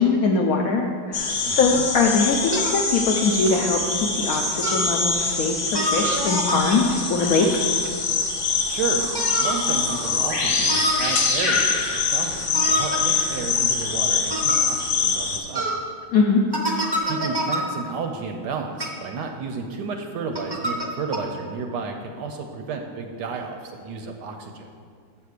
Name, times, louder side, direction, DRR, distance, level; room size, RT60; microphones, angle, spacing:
voice 1, 0.0-7.8 16.1-16.4, left 4 dB, 75° left, 2 dB, 0.8 m, -22 dB
sound 1, 1.1-15.4, left 4 dB, 45° left, 1.2 m, -24 dB
voice 2, 1.4-1.8 8.7-15.7 17.0-24.7, right 4 dB, 70° right, 4 dB, 1.1 m, -32 dB
sound 2, 1.7-1.9 2.5-2.8 3.5-3.6 4.6-4.9 5.7-6.8 9.1-9.6 10.7-11.1 12.5-13.0 14.3-14.6 15.5-15.8 16.5-17.6 18.7-18.9 20.3-20.9 21.1-21.2, right 1 dB, 30° right, 0.4 m, -26 dB
7.6 x 5.9 x 6.5 m, 2.2 s
omnidirectional pair, 2.2 m